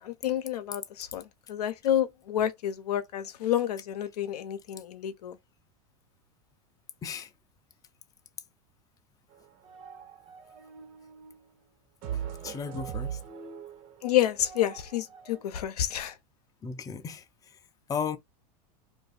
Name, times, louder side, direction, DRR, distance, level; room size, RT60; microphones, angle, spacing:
voice 1, 0.0-5.4 14.0-16.2, left 11 dB, 90° left, 0.6 m, -29 dB
sound 1, 9.3-11.4 12.0-15.4, right 8 dB, 55° right, 1.3 m, -40 dB
voice 2, 12.1-13.2 16.6-17.2 17.9-18.2, left 6 dB, 20° left, 0.5 m, -35 dB
2.6 x 2.3 x 3.9 m
supercardioid pair, 120°, 19 cm